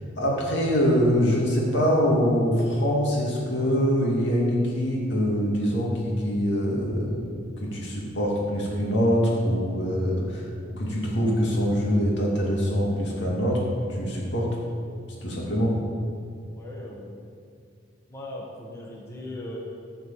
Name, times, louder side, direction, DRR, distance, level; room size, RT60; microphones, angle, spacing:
voice 1, 0.2-7.3 7.6-10.4 10.8-13.6 13.9-14.5 15.2-15.7, equal, 70° left, -3 dB, 2.4 m, -24 dB
voice 2, 16.5-17.2 18.1-19.6, left 1 dB, 15° left, -4 dB, 1.3 m, -38 dB
11.5 x 4.7 x 7.4 m, 2.4 s
head